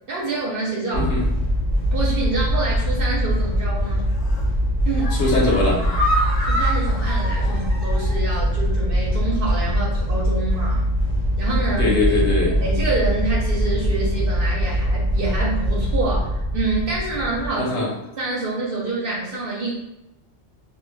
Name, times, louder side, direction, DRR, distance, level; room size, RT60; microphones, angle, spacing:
voice 1, 0.1-1.1 1.9-4.1 4.9-5.1 6.4-10.8 11.4-11.9 12.4-17.7 18.2-19.7, right 3 dB, 55° right, -4 dB, 0.6 m, -27 dB
sound 1, 0.9-17.5, equal, 35° left, 0.9 m, -22 dB
sound 2, 4.1-4.5 4.9-8.3 8.6-8.7 9.0-9.1, equal, 85° left, 1.2 m, -28 dB
voice 2, 5.1-5.8 11.8-12.5 17.6-17.9, left 2 dB, 65° left, -3 dB, 1.0 m, -21 dB
2.3 x 2.2 x 3.2 m, 0.95 s
omnidirectional pair, 1.3 m